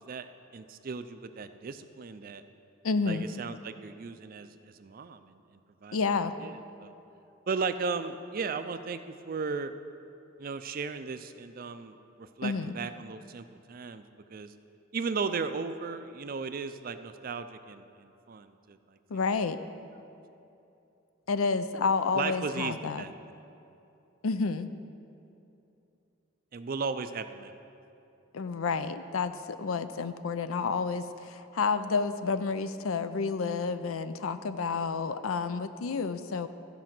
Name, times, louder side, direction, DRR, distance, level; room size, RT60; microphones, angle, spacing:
voice 1, 0.1-2.4 3.0-4.5 4.7-6.0 6.4-6.9 7.5-9.7 10.4-14.0 14.3-14.5 14.9-19.0 22.1-23.1 26.5-27.6, right 5 dB, 45° right, 10 dB, 0.4 m, -36 dB
voice 2, 2.8-3.2 5.9-6.3 12.4-12.7 19.1-19.6 21.3-23.0 24.2-24.7 28.3-36.5, left 4 dB, 85° left, 11 dB, 0.5 m, -30 dB
14.5 x 5.0 x 6.0 m, 2.8 s
head